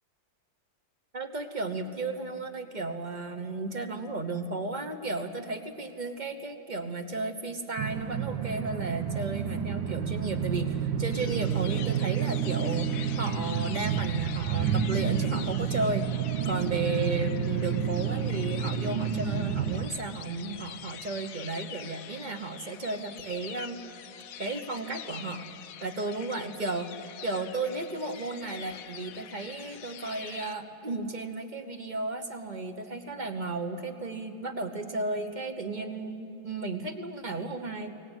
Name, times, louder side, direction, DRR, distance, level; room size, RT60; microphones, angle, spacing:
voice 1, 1.1-16.0 16.4-23.8 24.4-25.5 25.8-37.9, right 3 dB, 30° right, 8 dB, 0.9 m, -34 dB
sound 1, 7.8-19.9, right 8 dB, 85° right, 1.6 m, -30 dB
sound 2, 11.1-30.5, left 9 dB, 65° left, 1.0 m, -45 dB
23.0 x 18.0 x 9.0 m, 2.9 s
omnidirectional pair, 2.0 m